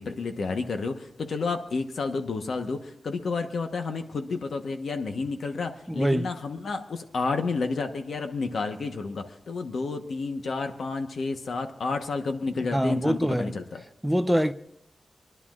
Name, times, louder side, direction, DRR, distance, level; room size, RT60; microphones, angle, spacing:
voice 1, 0.0-13.8, left 4 dB, 80° left, 1.1 m, -30 dB
voice 2, 5.9-6.3 12.7-13.6 14.0-14.5, equal, 5° right, 0.5 m, -24 dB
26.0 x 11.0 x 2.5 m
wide cardioid pair, 105°, 0 cm